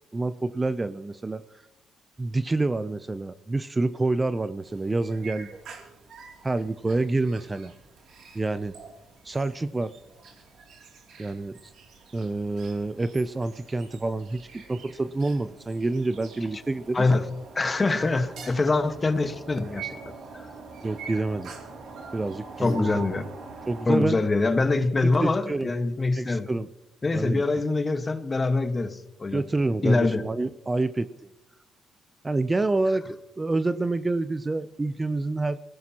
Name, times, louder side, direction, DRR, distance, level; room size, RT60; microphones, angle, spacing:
voice 1, 0.1-1.4 2.2-5.6 6.4-7.7 8.3-8.7 9.2-9.9 11.2-11.7 12.1-17.1 20.8-21.5 22.1-23.0 23.7-24.2 25.0-25.7 26.1-26.7 27.1-27.4 29.3-31.1 32.2-35.6, right 2 dB, 20° right, 13 dB, 0.5 m, -27 dB
sound 1, 4.6-23.9, right 5 dB, 70° right, 2.7 m, -44 dB
voice 2, 17.5-20.0 20.3-20.4 22.6-23.2 23.9-26.5 27.0-29.4 29.8-30.2, left 3 dB, 30° left, 9 dB, 1.4 m, -24 dB
23.5 x 17.0 x 2.9 m, 0.88 s
cardioid pair, 90°, 0 cm